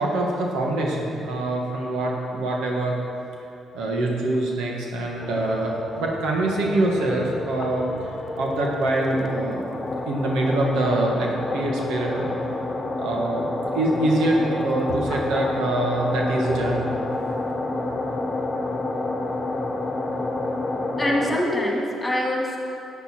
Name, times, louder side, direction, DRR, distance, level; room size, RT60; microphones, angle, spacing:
voice 1, 0.0-3.0 3.7-7.9 8.4-9.6 10.1-12.3 12.9-13.5 13.7-16.9 17.8-18.0, right 1 dB, 90° right, -1 dB, 1.6 m, -24 dB
sound 1, 5.2-21.4, left 2 dB, 25° left, 0.9 m, -29 dB
voice 2, 21.0-22.6, left 1 dB, 10° left, -3 dB, 2.4 m, -24 dB
11.0 x 8.1 x 4.4 m, 2.6 s
cardioid pair, 90°, 0 cm